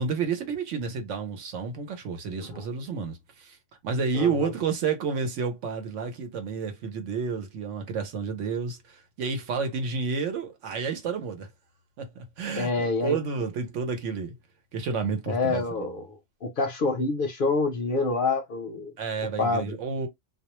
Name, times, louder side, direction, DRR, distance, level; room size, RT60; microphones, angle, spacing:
voice 1, 0.0-3.6 3.8-11.5 12.0-14.3 14.7-15.9 19.0-20.1, right 5 dB, 85° right, 1.0 m, -30 dB
voice 2, 4.1-4.5 12.6-13.2 15.3-16.1 16.4-18.9 19.4-19.8, left 3 dB, 60° left, 0.6 m, -27 dB
2.4 x 2.1 x 2.9 m
omnidirectional pair, 1.2 m